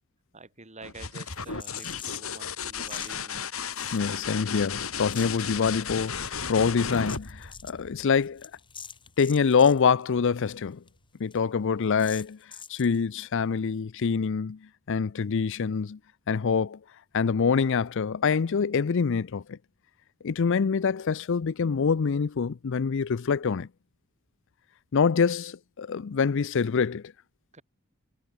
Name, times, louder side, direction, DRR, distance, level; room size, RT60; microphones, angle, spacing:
voice 1, 0.3-3.5 27.5-27.6, right 3 dB, 35° right, 6.3 m, -47 dB
sound 1, 0.8-8.4 10.2-10.7, left 6 dB, 85° left, 7.4 m, -34 dB
sound 2, 1.3-2.4 2.8-3.2 3.7-4.6 4.8-5.4 6.0-9.8 10.1-10.2 10.5-10.6 10.9-11.0 11.3-11.4 12.0-13.0, left 6 dB, 25° left, 4.3 m, -45 dB
voice 2, 3.9-8.5 9.2-10.8 11.2-12.4 12.7-14.6 14.9-16.0 16.3-16.8 17.1-19.6 20.2-23.7 24.9-27.0, left 5 dB, 60° left, 0.5 m, -25 dB
head